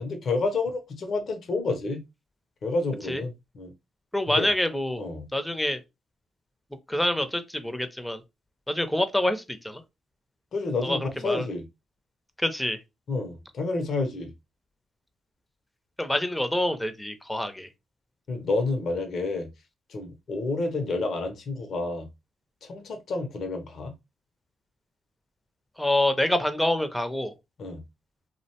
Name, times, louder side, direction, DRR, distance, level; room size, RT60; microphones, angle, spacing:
voice 1, 0.0-2.0 2.6-3.7 4.3-4.5 5.0-5.3 10.5-11.6 13.1-14.3 18.3-19.5 19.9-22.1 22.6-23.9 27.6-27.8, left 3 dB, 60° left, 0.6 m, -29 dB
voice 2, 4.1-5.0 5.3-5.8 6.9-8.2 8.7-9.8 10.8-11.5 12.4-12.8 16.0-17.7 25.8-27.3, left 1 dB, 5° left, 0.5 m, -26 dB
2.5 x 2.1 x 2.8 m
supercardioid pair, 60°, 0 cm